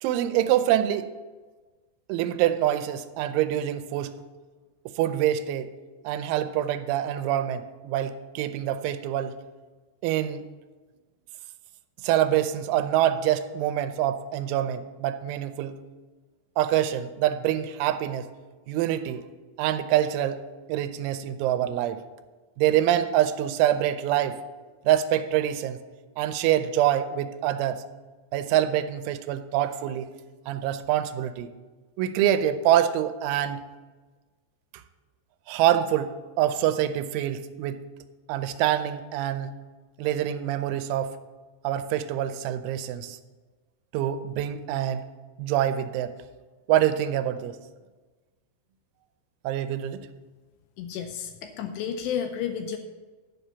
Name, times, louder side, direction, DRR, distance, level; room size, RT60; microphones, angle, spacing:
voice 1, 0.0-1.1 2.1-4.1 4.9-5.7 6.0-9.4 10.0-10.5 12.0-15.8 16.6-18.3 18.7-19.2 19.6-20.4 20.7-22.0 22.6-24.4 24.9-25.8 26.2-27.8 28.3-30.1 30.5-31.5 32.0-33.6 35.5-37.8 38.3-39.6 40.0-41.2 41.6-43.2 43.9-45.0 45.4-46.2 46.7-47.6 49.4-50.0, right 11 dB, 90° right, 10 dB, 3.0 m, -25 dB
voice 2, 50.8-52.8, left 8 dB, 80° left, 6 dB, 2.6 m, -31 dB
10.5 x 5.6 x 6.9 m, 1.3 s
omnidirectional pair, 5.4 m